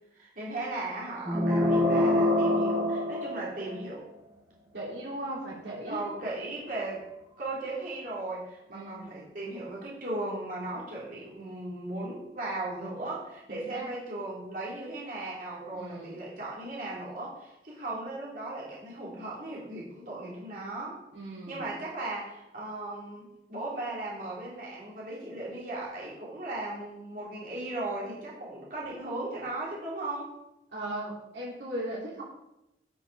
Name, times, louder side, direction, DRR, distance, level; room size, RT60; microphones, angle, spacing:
voice 1, 0.1-4.0 5.9-7.1 7.4-21.0 21.5-30.3, right 2 dB, 50° right, -6 dB, 3.2 m, -37 dB
sound 1, 1.2-3.9, left 1 dB, 20° right, 1.7 m, -25 dB
voice 2, 4.7-6.0 8.7-9.1 13.5-13.9 15.7-16.1 21.1-21.6 30.7-32.2, right 1 dB, 80° right, -5 dB, 3.1 m, -38 dB
11.5 x 5.8 x 4.7 m, 0.89 s
head